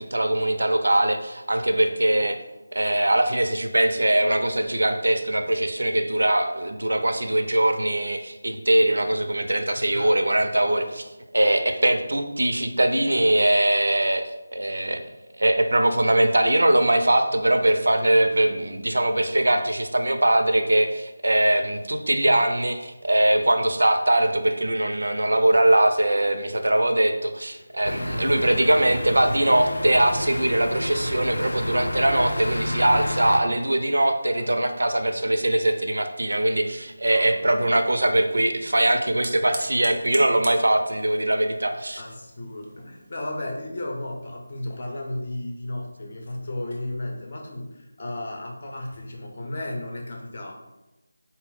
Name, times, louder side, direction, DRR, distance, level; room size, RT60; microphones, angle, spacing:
voice 1, 0.0-2.4 2.7-11.1 11.3-15.0 15.4-42.0, right 1 dB, 85° right, 7 dB, 0.4 m, -21 dB
voice 2, 9.7-10.2 10.6-11.0 27.5-27.7 34.4-34.7 37.1-37.8 42.0-50.5, left 1 dB, 40° left, 0 dB, 0.6 m, -35 dB
sound 1, 27.8-33.4, left 1 dB, 85° left, 0.5 m, -30 dB
Fire, 36.3-43.5, right 2 dB, 25° right, 0.4 m, -44 dB
4.0 x 2.0 x 4.0 m, 0.99 s
figure-of-eight pair, 175°, 0 cm